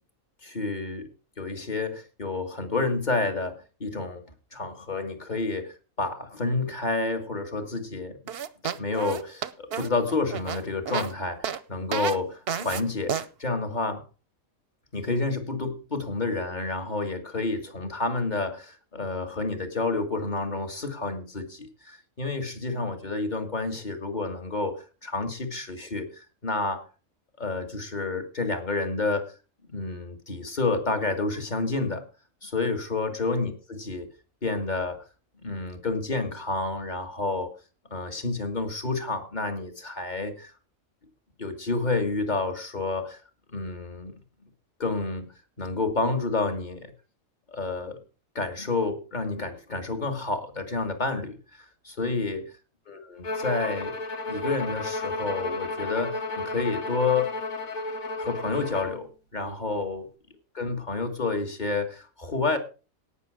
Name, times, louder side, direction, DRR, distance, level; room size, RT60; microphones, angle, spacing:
voice 1, 0.4-1.1 1.4-4.2 4.5-8.1 8.7-14.0 14.9-26.9 27.4-29.3 29.7-32.0 32.4-34.1 34.4-35.0 35.4-37.5 37.9-40.5 41.4-43.2 43.5-44.1 44.8-45.3 45.6-46.9 47.5-48.0 48.4-51.4 51.8-52.5 52.9-53.9 54.3-57.3 58.2-59.1 59.3-60.1 60.5-62.6, left 3 dB, 35° left, 5 dB, 1.7 m, -29 dB
sound 1, 8.3-11.1 11.4-11.6 11.9-12.2 12.5-12.8 13.1-13.3, right 8 dB, 55° right, 0.8 m, -31 dB
Bowed string instrument, 53.2-59.0, left 2 dB, 75° left, 2.0 m, -32 dB
17.5 x 6.2 x 4.8 m, 0.34 s
omnidirectional pair, 1.5 m